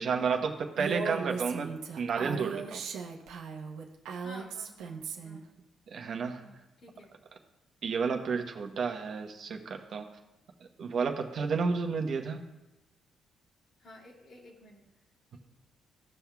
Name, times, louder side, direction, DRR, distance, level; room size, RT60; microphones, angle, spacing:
voice 1, 0.0-2.9 5.9-6.4 7.8-10.1 10.8-12.4, right 5 dB, 60° right, 3 dB, 0.9 m, -31 dB
Female speech woman speaking, 0.8-5.4, right 6 dB, 90° right, 0.9 m, -37 dB
voice 2, 4.2-5.4 6.4-7.1 8.0-8.2 13.8-14.9, equal, 50° left, -2 dB, 2.3 m, -52 dB
16.5 x 5.6 x 2.3 m, 1.0 s
cardioid pair, 90°, 0 cm